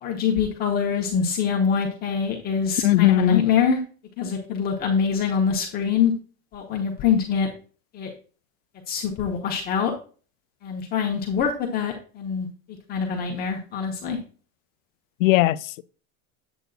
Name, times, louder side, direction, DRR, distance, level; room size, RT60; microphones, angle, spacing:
voice 1, 0.0-3.8 4.2-6.1 6.5-7.5 7.9-8.1 8.9-9.9 10.6-12.5 12.9-14.2, left 6 dB, 25° left, 1.0 m, -24 dB
voice 2, 2.8-3.4 15.2-15.8, left 17 dB, 80° left, 0.6 m, -18 dB
9.1 x 8.1 x 2.4 m
supercardioid pair, 180°, 39 cm